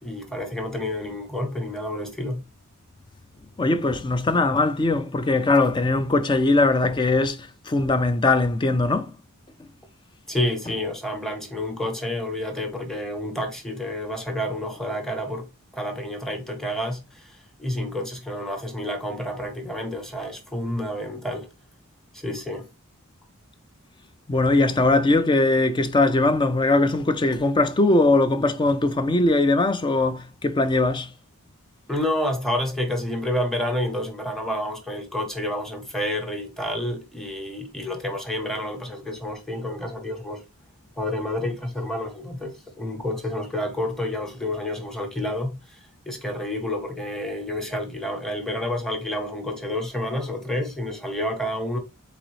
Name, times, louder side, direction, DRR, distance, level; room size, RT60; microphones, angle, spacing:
voice 1, 0.0-2.4 10.3-15.5 15.7-21.5 22.1-22.6 31.9-40.4 41.0-51.8, left 1 dB, ahead, 0.9 m, -29 dB
voice 2, 3.6-9.1 24.3-31.1, left 2 dB, 20° left, 0.4 m, -20 dB
3.9 x 3.9 x 3.0 m
head